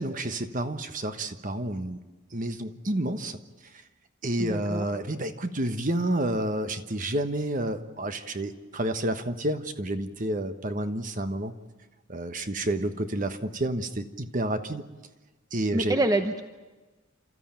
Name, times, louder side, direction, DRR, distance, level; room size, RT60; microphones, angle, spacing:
voice 1, 0.0-2.0 2.3-3.4 4.2-11.5 12.1-14.8 15.5-16.0, right 1 dB, 40° right, 9 dB, 1.2 m, -30 dB
voice 2, 4.4-4.9 15.7-16.4, right 1 dB, 20° right, 7 dB, 0.8 m, -26 dB
30.0 x 14.0 x 9.1 m, 1.2 s
head